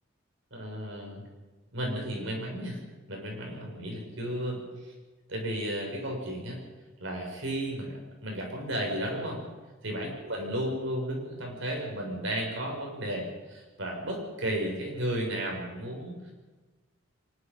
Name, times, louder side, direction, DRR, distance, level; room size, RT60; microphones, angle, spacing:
voice 1, 0.5-1.2 1.7-2.8 3.1-4.9 5.3-6.6 7.0-9.5 9.8-16.3, right 1 dB, 65° right, 0 dB, 7.2 m, -34 dB
24.0 x 21.5 x 5.6 m, 1.3 s
head